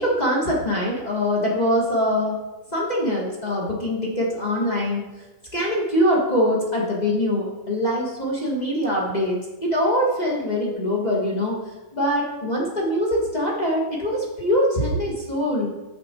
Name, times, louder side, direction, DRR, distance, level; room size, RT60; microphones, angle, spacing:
voice 1, 0.0-2.4 2.7-5.1 5.5-11.6 11.9-15.7, equal, 30° left, -3 dB, 0.8 m, -23 dB
7.7 x 7.5 x 4.4 m, 1.1 s
omnidirectional pair, 3.6 m